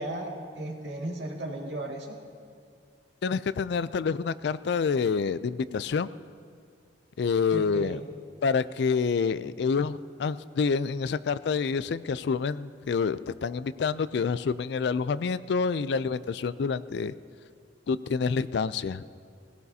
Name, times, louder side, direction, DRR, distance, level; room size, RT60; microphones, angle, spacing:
voice 1, 0.0-2.2 7.5-8.0, right 1 dB, 75° right, -1 dB, 2.1 m, -35 dB
voice 2, 3.2-6.1 7.2-8.0 8.4-17.1 17.9-19.0, left 5 dB, 65° left, 15 dB, 0.4 m, -27 dB
19.5 x 16.5 x 2.8 m, 2.2 s
head